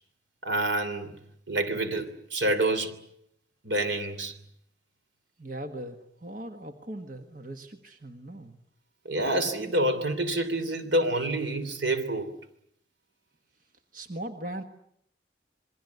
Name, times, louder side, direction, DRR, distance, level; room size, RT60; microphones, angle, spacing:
voice 1, 0.4-1.2 1.5-3.0 3.6-4.4 9.0-12.3, right 1 dB, 85° right, 3.1 m, -27 dB
voice 2, 5.4-8.6 13.9-14.6, right 1 dB, 50° right, 1.6 m, -39 dB
27.5 x 22.0 x 8.3 m
head